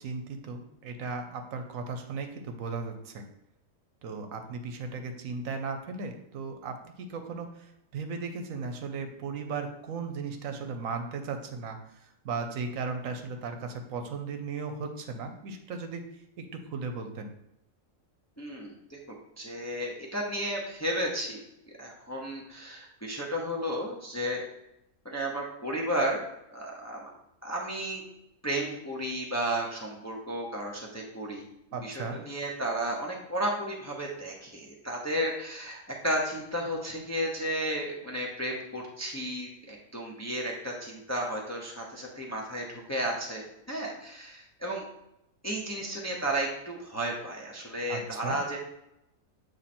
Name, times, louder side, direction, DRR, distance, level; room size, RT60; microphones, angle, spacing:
voice 1, 0.0-3.2 4.0-17.3 31.7-32.2 47.9-48.4, right 4 dB, 75° right, 6 dB, 1.1 m, -36 dB
voice 2, 18.4-19.0 19.4-21.4 21.8-24.4 25.0-26.2 26.5-27.1 27.4-28.0 28.4-31.4 31.8-44.8 45.4-48.6, right 1 dB, 15° left, -2 dB, 0.7 m, -33 dB
7.4 x 3.2 x 4.2 m, 0.81 s
omnidirectional pair, 1.4 m